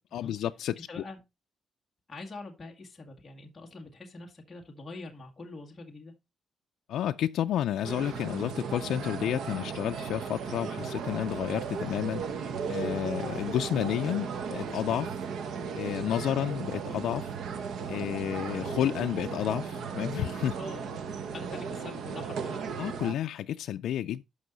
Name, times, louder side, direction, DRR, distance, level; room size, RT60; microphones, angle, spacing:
voice 1, 0.1-0.9 6.9-12.2 12.7-15.1 15.8-17.3 17.9-20.6 22.8-24.2, left 11 dB, 80° left, 0.4 m, -31 dB
voice 2, 0.9-1.2 2.1-6.1 20.5-21.0 21.3-22.6, left 3 dB, 15° left, 1.8 m, -44 dB
sound 1, 7.8-23.1, right 6 dB, 70° right, 1.1 m, -36 dB
12.5 x 5.5 x 3.9 m
cardioid pair, 180°, 0 cm